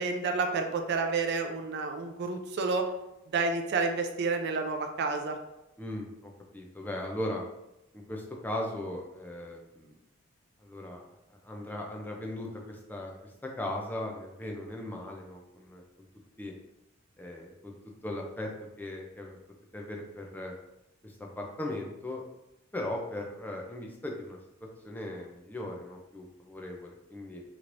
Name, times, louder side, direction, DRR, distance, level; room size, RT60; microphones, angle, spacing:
voice 1, 0.0-2.8 3.3-5.4, right 4 dB, 50° right, 5 dB, 0.4 m, -30 dB
voice 2, 5.8-7.4 7.9-9.9 10.6-11.0 11.4-15.8 16.4-16.5 17.2-17.7 18.0-18.5 18.8-19.4 19.7-20.5 21.0-22.2 22.7-27.4, left 1 dB, 10° left, 0 dB, 0.4 m, -38 dB
3.1 x 3.0 x 2.5 m, 0.90 s
head